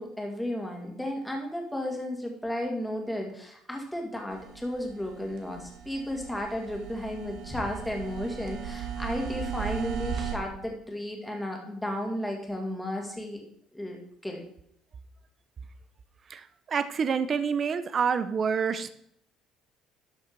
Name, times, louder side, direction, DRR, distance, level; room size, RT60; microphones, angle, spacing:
voice 1, 0.0-13.4 13.7-14.4, left 1 dB, 5° left, 1 dB, 2.1 m, -34 dB
sound 1, 4.3-10.4, right 7 dB, 65° right, 1.5 m, -36 dB
voice 2, 16.3-18.9, right 6 dB, 30° right, 12 dB, 0.6 m, -27 dB
12.0 x 6.3 x 4.6 m, 0.69 s
cardioid pair, 155°, 0 cm